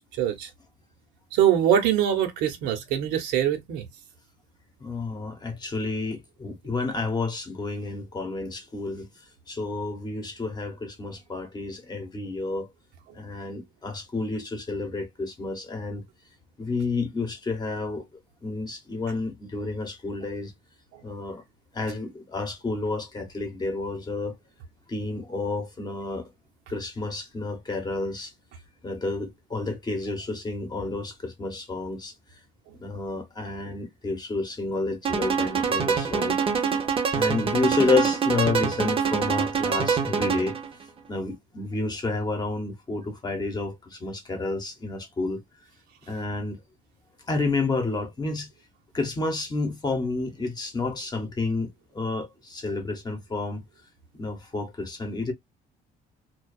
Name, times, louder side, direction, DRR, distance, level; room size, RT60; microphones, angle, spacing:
voice 1, 0.2-0.5 1.3-3.8 36.8-36.9, right 10 dB, 85° right, 0.8 m, -23 dB
voice 2, 4.8-9.1 9.5-12.7 13.1-16.0 16.6-18.0 18.4-20.5 21.0-21.4 21.7-24.3 24.9-26.3 26.7-28.3 28.8-32.1 32.8-36.4 37.1-40.6 41.1-45.4 46.1-46.6 47.3-48.5 48.9-53.6 54.2-55.3, left 3 dB, 25° left, 0.9 m, -30 dB
sound 1, 35.0-40.7, right 6 dB, 30° right, 0.6 m, -25 dB
2.4 x 2.2 x 2.2 m
cardioid pair, 110°, 17 cm